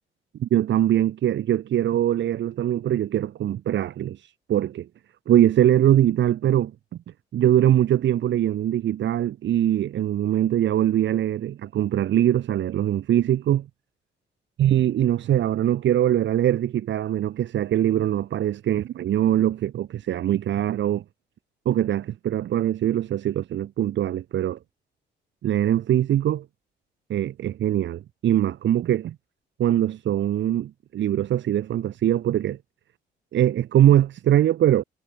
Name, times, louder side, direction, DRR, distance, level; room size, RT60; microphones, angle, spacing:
voice 1, 0.4-4.2 4.5-4.9 5.3-6.7 7.3-13.7 14.6-21.0 21.6-24.6 25.4-26.4 27.1-29.1 29.6-32.6 33.3-34.8, right 11 dB, 65° right, 1.3 m, -22 dB
cardioid pair, 90°, 20 cm